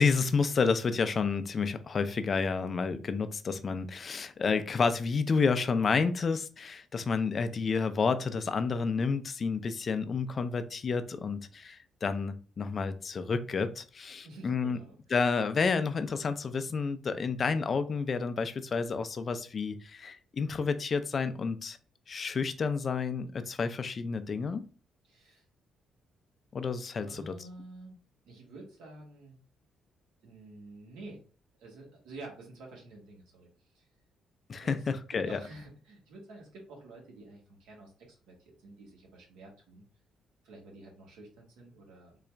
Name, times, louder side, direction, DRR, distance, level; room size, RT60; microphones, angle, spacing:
voice 1, 0.0-14.8 15.1-21.8 22.1-24.6 26.5-27.3 34.5-35.4, left 5 dB, 45° left, 0.4 m, -30 dB
voice 2, 14.2-15.0 25.0-25.4 27.0-28.0 28.2-29.4 30.2-31.2 31.6-33.9 34.6-34.8 35.1-39.8 40.4-42.2, right 2 dB, 90° right, 1.4 m, -49 dB
3.9 x 2.4 x 3.2 m
cardioid pair, 90°, 0 cm